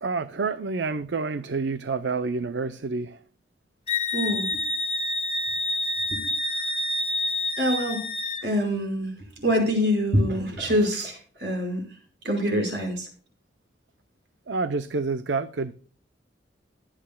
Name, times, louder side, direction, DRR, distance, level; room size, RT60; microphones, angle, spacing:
voice 1, 0.0-3.2 14.5-15.7, right 4 dB, 90° right, 13 dB, 0.6 m, -28 dB
Wind instrument woodwind instrument, 3.9-8.4, left 2 dB, 35° left, 1.1 m, -28 dB
voice 2, 4.1-4.5 6.1-6.3 7.6-8.0 8.4-9.1 9.4-11.8 12.2-13.1, equal, 70° right, 2 dB, 5.2 m, -25 dB
21.5 x 8.9 x 2.3 m, 0.40 s
head